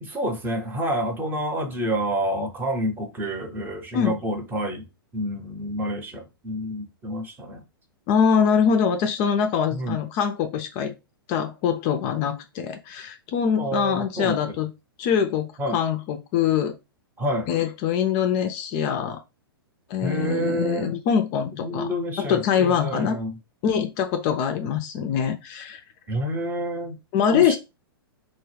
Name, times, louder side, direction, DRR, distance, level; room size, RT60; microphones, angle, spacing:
voice 1, 0.0-4.9 5.1-7.6 9.7-10.0 13.6-14.4 15.6-15.8 17.2-17.5 20.0-21.0 21.6-23.4 26.1-27.0 27.3-27.6, equal, 15° right, 0.8 m, -28 dB
voice 2, 8.1-10.9 11.3-14.7 15.0-16.8 17.5-19.2 19.9-21.9 22.2-23.2 23.6-25.8 27.1-27.6, left 7 dB, 35° left, 0.4 m, -23 dB
2.2 x 2.1 x 3.3 m
hypercardioid pair, 115°, 13 cm